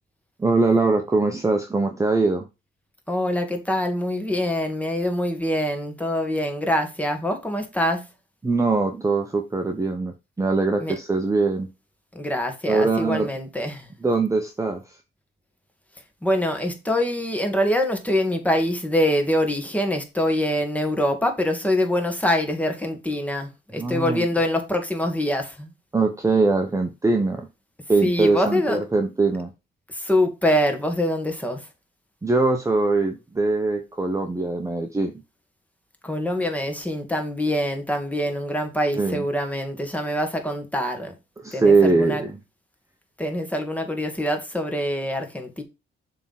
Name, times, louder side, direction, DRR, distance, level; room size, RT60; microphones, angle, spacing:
voice 1, 0.4-2.5 8.4-11.7 12.7-13.3 14.0-14.8 23.8-24.2 25.9-27.5 27.9-29.5 32.2-35.1 38.9-39.2 41.4-42.4, right 3 dB, 15° right, 1.0 m, -22 dB
voice 2, 3.1-8.1 10.8-10.9 12.1-13.9 16.2-25.7 28.0-28.8 29.9-31.7 36.0-41.1 41.5-42.2 43.2-45.6, left 1 dB, 5° left, 2.2 m, -24 dB
6.8 x 3.8 x 5.9 m
cardioid pair, 90°, 20 cm